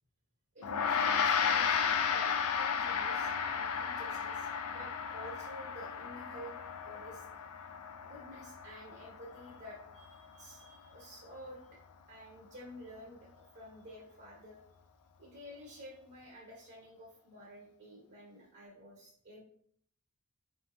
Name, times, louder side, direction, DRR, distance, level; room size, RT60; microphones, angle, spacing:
voice 1, 0.5-7.3 8.0-11.8 12.1-14.6 15.2-19.4, equal, 50° right, -4 dB, 1.1 m, -51 dB
Gong, 0.6-10.3, left 6 dB, 75° left, 0.4 m, -34 dB
4.3 x 3.7 x 2.7 m, 0.63 s
head